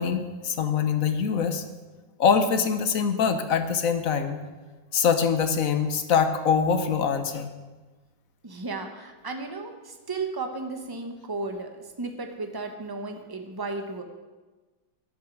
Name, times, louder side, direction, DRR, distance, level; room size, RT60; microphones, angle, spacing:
voice 1, 0.0-1.6 2.2-4.4 4.9-7.5, left 6 dB, 55° left, 8 dB, 1.2 m, -24 dB
voice 2, 8.4-11.7 12.0-14.0, right 3 dB, 15° right, 5 dB, 0.8 m, -34 dB
12.0 x 9.3 x 6.3 m, 1.3 s
omnidirectional pair, 2.1 m